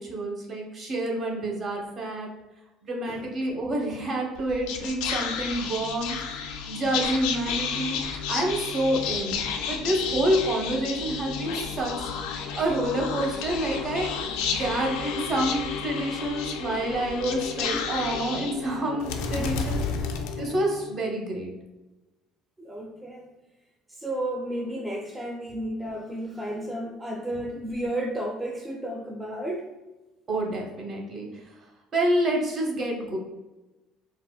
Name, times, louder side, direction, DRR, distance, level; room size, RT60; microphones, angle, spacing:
voice 1, 0.0-2.3 2.8-8.0 8.3-9.4 9.7-12.1 12.5-19.8 20.4-21.5 30.3-31.3 31.9-33.2, right 1 dB, 40° right, -1 dB, 0.8 m, -28 dB
Whispering, 4.3-20.9, left 6 dB, 85° left, 0.3 m, -32 dB
voice 2, 19.4-20.0 22.6-23.4 23.9-29.7, right 1 dB, 10° right, -1 dB, 0.3 m, -33 dB
3.9 x 2.2 x 2.2 m, 1.1 s
cardioid pair, 115°, 0 cm